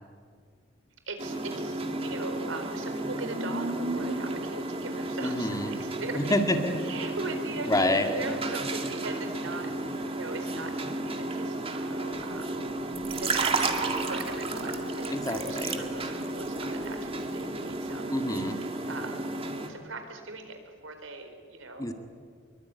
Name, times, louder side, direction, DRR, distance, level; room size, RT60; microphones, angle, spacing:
voice 1, 1.1-6.3 6.8-12.5 13.1-18.1 18.9-19.3 19.7-20.6 20.8-21.8, right 3 dB, 90° right, 6 dB, 4.4 m, -40 dB
sound 1, 1.2-19.7, right 2 dB, 30° right, 2.2 m, -32 dB
voice 2, 5.2-5.7 6.1-6.7 7.7-8.1 15.1-15.8 18.1-18.6 21.8-21.9, left 1 dB, 20° left, 5 dB, 2.1 m, -27 dB
25.0 x 23.0 x 9.6 m, 2.1 s
head